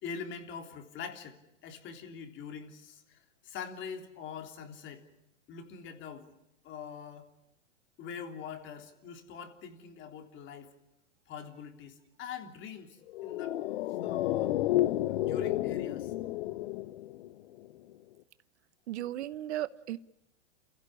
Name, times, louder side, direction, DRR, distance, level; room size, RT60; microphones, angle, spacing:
voice 1, 0.0-1.4 1.6-3.2 3.4-5.0 5.5-6.3 6.6-7.3 8.0-10.7 11.3-13.0 13.2-13.6 14.0-14.6 15.1-16.1, left 6 dB, 35° left, 3.3 m, -43 dB
sound 1, 13.1-17.7 17.9-18.0, left 14 dB, 60° left, 0.9 m, -31 dB
voice 2, 18.9-20.0, right 13 dB, 70° right, 1.0 m, -35 dB
28.0 x 16.0 x 9.9 m
hypercardioid pair, 130°, 35 cm